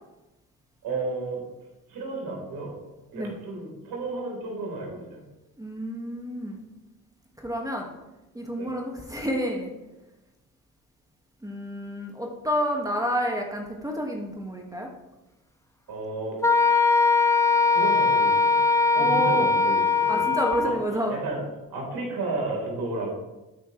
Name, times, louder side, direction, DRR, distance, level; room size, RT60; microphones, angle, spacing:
voice 1, 0.8-1.4 1.9-2.8 3.1-5.2 8.6-8.7 15.9-16.9 17.7-18.6 18.9-20.3 20.6-20.7 21.1-21.4 21.7-23.1, right 3 dB, 60° right, -1 dB, 4.3 m, -33 dB
voice 2, 5.6-6.7 7.4-7.9 8.3-9.7 11.4-14.9 19.0-19.5 20.1-21.2, equal, 10° right, 1 dB, 2.0 m, -29 dB
Wind instrument woodwind instrument, 16.4-20.8, left 4 dB, 5° left, 1.0 m, -21 dB
12.0 x 9.2 x 3.3 m, 1.0 s
hypercardioid pair, 50°, 41 cm